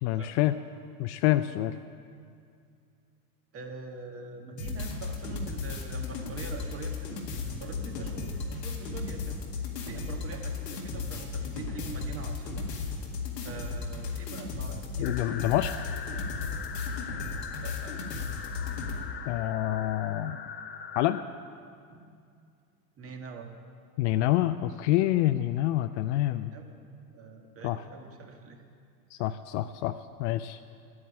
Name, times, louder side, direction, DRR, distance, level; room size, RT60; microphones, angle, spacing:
voice 1, 0.0-0.5 1.0-1.7 15.0-15.7 19.3-20.4 21.0-21.2 24.0-26.5 27.6-27.8 29.1-30.6, left 14 dB, 50° left, 11 dB, 0.4 m, -27 dB
voice 2, 3.5-9.4 9.8-12.7 13.4-15.2 17.5-18.0 21.9-22.1 23.0-23.5 26.5-26.8 27.1-28.6 29.2-29.3, right 3 dB, 30° right, 3 dB, 1.6 m, -44 dB
sound 1, 4.6-19.0, left 4 dB, 85° left, 2.1 m, -35 dB
sound 2, 15.0-21.2, left 6 dB, 20° left, 0.8 m, -41 dB
10.0 x 9.4 x 8.5 m, 2.3 s
hypercardioid pair, 105°, 48 cm